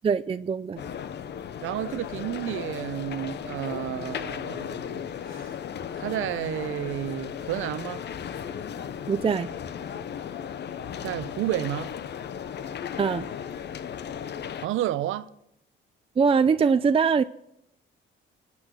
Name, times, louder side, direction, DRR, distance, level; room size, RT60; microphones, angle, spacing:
voice 1, 0.0-0.8 9.1-9.5 13.0-13.3 16.2-17.2, right 6 dB, 30° right, 0.5 m, -22 dB
sound 1, 0.8-14.7, left 8 dB, 60° left, 0.9 m, -36 dB
voice 2, 1.6-5.5 6.0-8.0 11.0-11.9 14.6-15.3, right 13 dB, 85° right, 0.8 m, -31 dB
26.0 x 8.7 x 6.2 m
cardioid pair, 90°, 20 cm